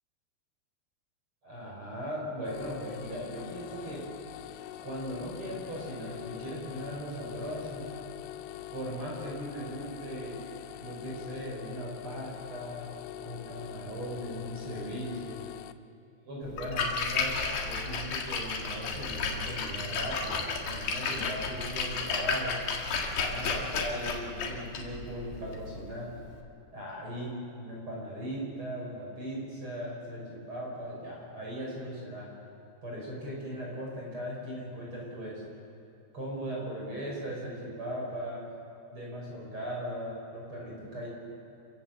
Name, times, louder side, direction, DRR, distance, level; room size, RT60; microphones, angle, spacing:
voice 1, 1.4-4.0 4.8-7.9 8.7-10.4 10.8-13.0 13.2-15.4 16.3-22.6 23.2-26.1 26.7-32.3 32.8-35.4 36.1-38.4 38.9-41.1, equal, 30° right, -4 dB, 6.1 m, -38 dB
sound 1, 2.4-15.7, left 13 dB, 85° left, 2.7 m, -44 dB
Splash splatter, 16.5-26.4, left 4 dB, 65° left, 3.6 m, -33 dB
29.5 x 16.0 x 7.6 m, 2.7 s
omnidirectional pair, 4.6 m